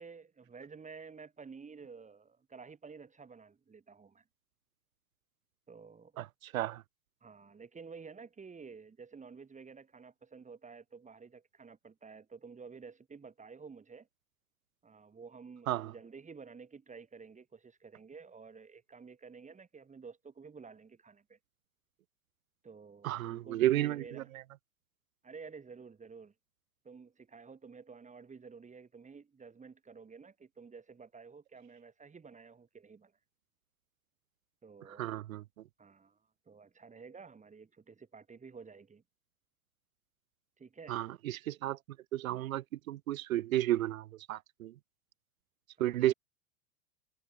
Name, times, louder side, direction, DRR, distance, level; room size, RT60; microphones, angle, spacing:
voice 1, 0.0-4.2 5.7-6.1 7.2-14.1 14.8-21.4 22.6-24.3 25.2-26.3 26.8-33.1 34.6-35.1 35.8-36.2 36.5-39.0 40.6-41.0 45.8-46.1, right 5 dB, 15° right, 4.6 m, -51 dB
voice 2, 6.2-6.8 15.7-15.9 23.0-24.4 35.0-35.6 40.9-41.8 42.1-44.7 45.8-46.1, right 14 dB, 60° right, 1.2 m, -33 dB
figure-of-eight pair, 85°, 47 cm